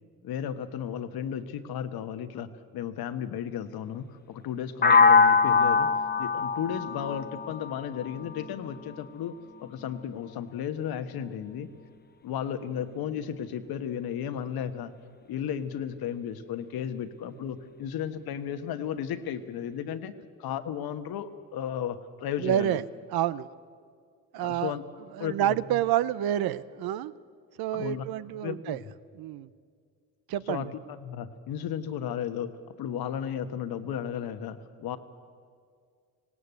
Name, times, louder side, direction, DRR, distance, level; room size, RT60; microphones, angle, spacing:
voice 1, 0.2-5.9 6.2-9.3 9.6-11.7 12.2-14.9 15.3-20.1 20.4-22.8 24.4-24.8 25.2-25.5 27.7-28.0 28.4-28.8 30.5-30.7 31.0-32.5 32.8-35.0, left 9 dB, 65° left, 10 dB, 1.3 m, -34 dB
sound 1, 4.8-8.7, left 5 dB, 25° left, 0.9 m, -22 dB
voice 2, 22.4-22.8 23.1-23.5 24.3-24.8 25.1-27.1 27.6-28.8 29.1-29.5 30.3-30.7, right 12 dB, 65° right, 17 dB, 0.7 m, -28 dB
18.5 x 17.5 x 8.2 m, 2.1 s
supercardioid pair, 80°, 40 cm